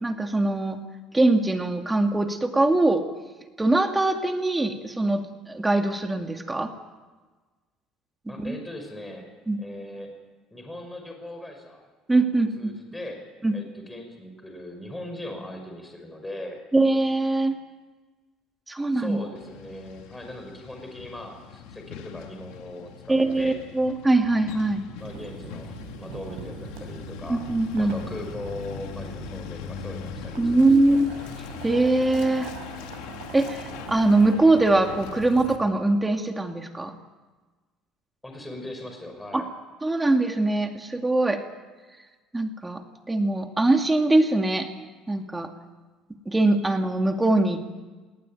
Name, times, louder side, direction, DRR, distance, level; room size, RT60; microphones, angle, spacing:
voice 1, 0.0-0.8 1.1-3.0 3.6-6.7 8.4-8.6 9.5-9.6 12.1-12.7 13.4-13.5 16.7-17.5 18.7-19.2 23.1-24.8 27.3-27.9 30.4-31.1 31.6-32.5 33.3-37.0 39.3-39.4 39.8-41.4 42.3-42.8 43.1-44.7 45.1-45.5 46.3-47.7, right 2 dB, 15° right, 5 dB, 2.3 m, -22 dB
voice 2, 8.3-9.3 9.6-10.1 10.5-11.8 12.3-13.2 13.5-16.6 18.9-23.6 25.0-27.5 27.8-31.0 38.2-39.5, left 1 dB, 10° left, 4 dB, 5.7 m, -39 dB
Truck, 19.3-35.6, left 9 dB, 85° left, 2.0 m, -41 dB
Boiling, 25.0-34.3, right 6 dB, 85° right, 6.8 m, -42 dB
20.5 x 19.0 x 9.3 m, 1.3 s
supercardioid pair, 100°, 0 cm